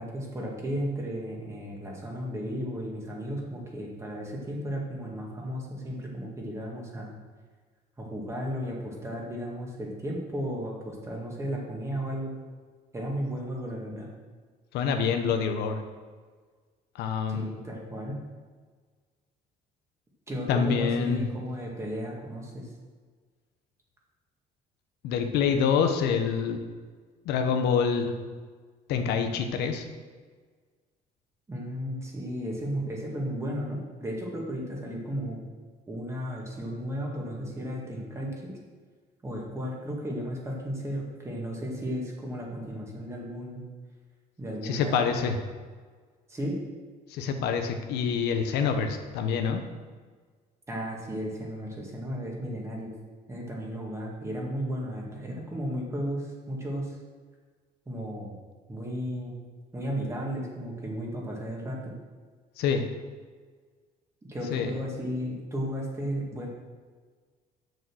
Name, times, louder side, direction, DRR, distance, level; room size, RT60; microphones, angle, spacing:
voice 1, 0.0-7.1 8.0-12.3 12.9-14.1 17.3-18.2 20.3-22.7 31.5-35.5 35.9-38.5 39.2-43.6 44.4-45.3 46.3-46.6 50.7-52.9 53.3-57.0 57.9-58.4 58.7-59.3 59.7-61.9 64.2-66.5, equal, 15° right, -2 dB, 1.9 m, -34 dB
voice 2, 14.7-15.8 17.0-17.4 20.5-21.2 25.0-26.6 27.3-28.1 28.9-29.9 44.6-45.4 47.1-49.6 62.6-62.8 64.5-64.7, left 6 dB, 85° left, 6 dB, 1.0 m, -26 dB
6.9 x 6.5 x 6.3 m, 1.5 s
cardioid pair, 140°, 17 cm